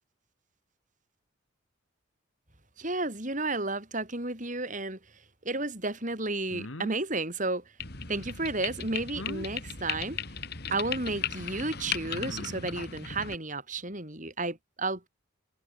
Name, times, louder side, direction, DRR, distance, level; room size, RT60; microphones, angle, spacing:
voice 1, 2.8-7.6 8.1-10.2 10.7-15.1, right 2 dB, 40° right, 5.4 m, -32 dB
sound 1, 6.5-7.0 9.1-9.5 10.9-11.0 12.1-12.8, left 1 dB, 75° left, 2.5 m, -40 dB
sound 2, 7.8-13.4, left 7 dB, 50° left, 3.2 m, -37 dB
head